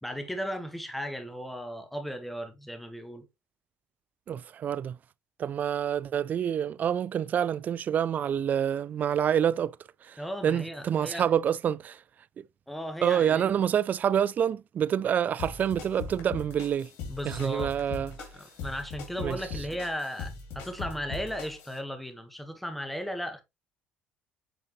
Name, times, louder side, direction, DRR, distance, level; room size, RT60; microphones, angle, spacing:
voice 1, 0.0-3.3 10.2-11.3 12.7-13.6 17.1-17.8 18.3-23.4, equal, 5° left, 1.5 m, -36 dB
voice 2, 4.3-5.0 5.4-9.8 10.0-12.0 12.4-12.5 13.0-16.9 17.2-18.1 19.2-19.4, right 9 dB, 45° right, 0.3 m, -27 dB
sound 1, 15.4-21.8, left 5 dB, 75° left, 2.8 m, -40 dB
9.0 x 3.8 x 3.1 m
supercardioid pair, 95°, 4 cm